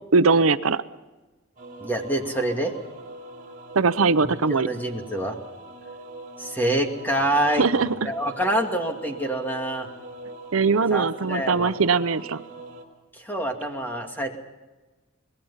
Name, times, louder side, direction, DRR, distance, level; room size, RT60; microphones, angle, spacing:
voice 1, 0.1-0.8 3.7-4.7 7.6-7.9 10.5-12.4, right 4 dB, 80° right, 12 dB, 0.7 m, -20 dB
sound 1, 1.6-12.8, right 2 dB, 40° right, 4.5 m, -41 dB
voice 2, 1.8-2.7 4.5-5.4 6.4-7.6 8.0-9.9 10.9-11.7 13.1-14.4, right 1 dB, 10° left, 3 dB, 2.4 m, -26 dB
24.5 x 20.5 x 5.7 m, 1.2 s
head